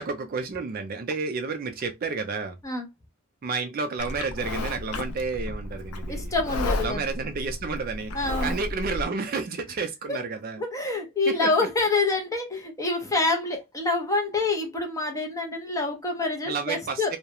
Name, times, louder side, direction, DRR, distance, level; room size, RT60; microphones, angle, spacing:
voice 1, 0.0-2.6 3.4-6.3 6.8-10.6 11.3-11.5 16.5-17.2, right 4 dB, 40° right, 0.3 m, -31 dB
Livestock farm animals working animals, 4.0-9.0, left 2 dB, 75° left, 0.4 m, -32 dB
voice 2, 6.1-7.1 8.1-8.6 10.1-10.2 10.6-17.1, left 3 dB, 15° left, 0.6 m, -27 dB
2.3 x 2.1 x 2.8 m
head